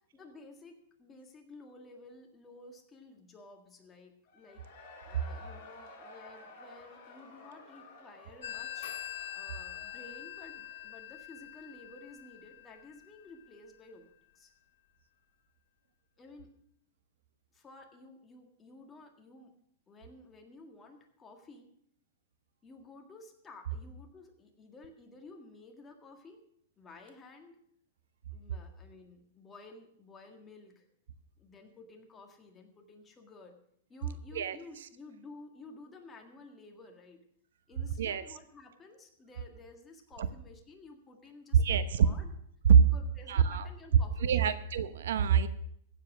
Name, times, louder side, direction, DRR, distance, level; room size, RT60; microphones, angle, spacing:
voice 1, 0.1-4.6 5.1-8.9 9.3-14.5 16.2-16.5 17.5-19.5 19.9-21.7 22.6-26.4 26.8-27.6 28.3-30.9 31.4-33.5 33.9-37.2 37.7-42.3 42.9-44.3, left 3 dB, 15° left, 3 dB, 1.8 m, -53 dB
Cheering / Crowd, 4.2-11.0, left 2 dB, 35° left, 5.5 m, -53 dB
Telephone, 8.4-13.7, left 12 dB, 75° left, 1.7 m, -44 dB
voice 2, 41.5-42.1 42.7-42.8 43.3-43.7 44.2-45.5, right 7 dB, 80° right, 12 dB, 0.9 m, -24 dB
15.5 x 7.7 x 6.1 m, 0.69 s
supercardioid pair, 155°, 0 cm